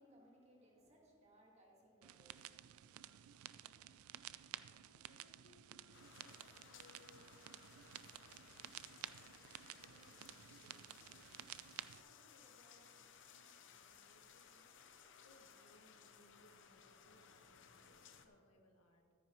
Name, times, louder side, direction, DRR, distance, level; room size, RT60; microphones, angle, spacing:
voice 1, 0.0-2.6, equal, 30° right, -3 dB, 1.9 m, -66 dB
sound 1, 2.0-12.0, right 12 dB, 90° right, 0.3 m, -54 dB
voice 2, 4.8-11.5 11.8-19.1, left 1 dB, 85° left, 2 dB, 1.5 m, -70 dB
sound 2, 5.9-18.3, left 7 dB, 60° left, 0.7 m, -62 dB
13.0 x 9.6 x 3.1 m, 2.4 s
head